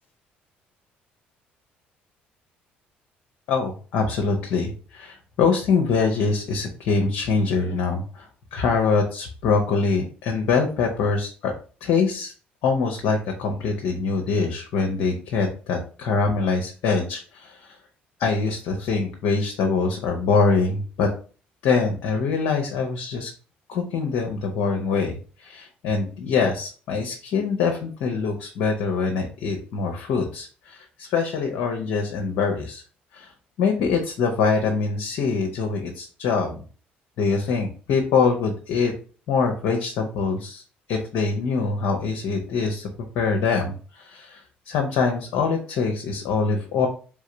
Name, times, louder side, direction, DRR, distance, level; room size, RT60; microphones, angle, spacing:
voice 1, 3.5-11.5 11.8-12.3 12.6-17.8 18.2-21.1 21.6-23.3 23.7-32.8 33.1-33.3 33.6-36.6 37.2-38.9 39.3-40.6 40.9-42.9 43.1-46.9, left 4 dB, 60° left, 3 dB, 0.7 m, -24 dB
3.7 x 3.3 x 3.3 m, 0.39 s
figure-of-eight pair, 50°, 5 cm